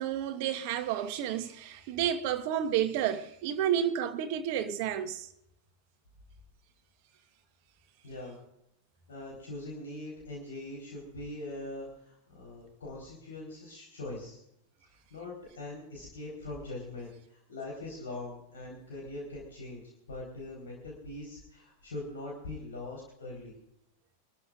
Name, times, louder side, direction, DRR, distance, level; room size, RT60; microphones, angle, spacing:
voice 1, 0.0-5.3, right 10 dB, 45° right, 1.4 m, -31 dB
voice 2, 8.0-8.4 9.1-14.4 15.1-19.8 20.1-23.5, left 2 dB, 65° left, 4.2 m, -42 dB
24.5 x 13.5 x 2.5 m
figure-of-eight pair, 90°, 0 cm